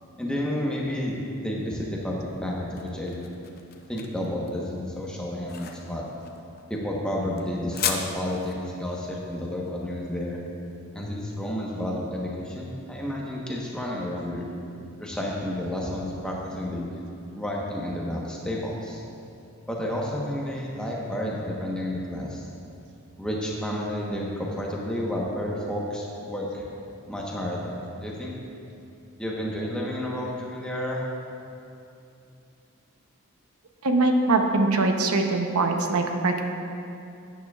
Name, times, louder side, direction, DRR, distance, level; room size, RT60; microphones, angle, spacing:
voice 1, 0.2-1.2 1.4-3.2 3.9-6.0 6.7-10.4 10.9-14.4 15.0-16.8 17.4-19.0 19.7-22.4 23.2-26.6 27.1-28.3 29.2-31.0, left 1 dB, 5° left, -4 dB, 1.0 m, -31 dB
sound 1, 2.2-11.3, left 7 dB, 40° left, 0.5 m, -37 dB
voice 2, 33.8-36.4, right 2 dB, 85° right, 4 dB, 0.8 m, -22 dB
11.5 x 9.4 x 2.4 m, 2.6 s
head